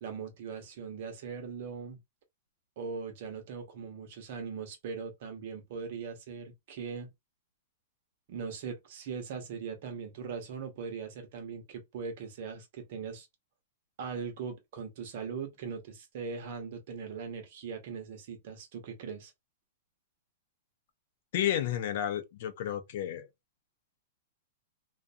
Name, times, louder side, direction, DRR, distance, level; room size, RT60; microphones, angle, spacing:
voice 1, 0.0-2.0 2.8-7.1 8.3-13.3 14.0-19.3, right 5 dB, 50° right, 0.9 m, -40 dB
voice 2, 21.3-23.3, left 11 dB, 50° left, 0.5 m, -31 dB
2.5 x 2.2 x 2.6 m
supercardioid pair, 165°, 0 cm